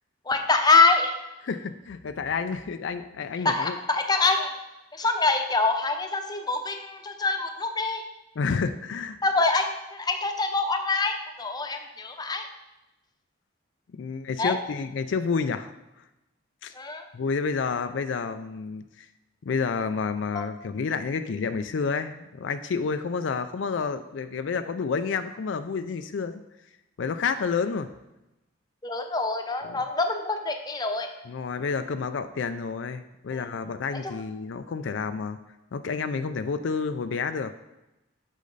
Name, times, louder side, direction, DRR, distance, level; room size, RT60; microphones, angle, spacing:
voice 1, 0.3-1.1 3.4-4.5 4.9-8.0 9.2-12.5 14.4-14.6 16.8-17.0 20.3-20.4 28.8-31.1 33.3-33.5, left 3 dB, 20° left, 5 dB, 0.7 m, -25 dB
voice 2, 1.4-3.8 8.4-9.2 13.9-15.7 16.6-16.7 17.1-19.1 19.4-26.4 27.0-27.9 29.6-29.8 31.2-35.4 35.7-37.5, left 5 dB, 70° left, 9 dB, 0.4 m, -29 dB
8.4 x 6.5 x 3.9 m, 0.94 s
head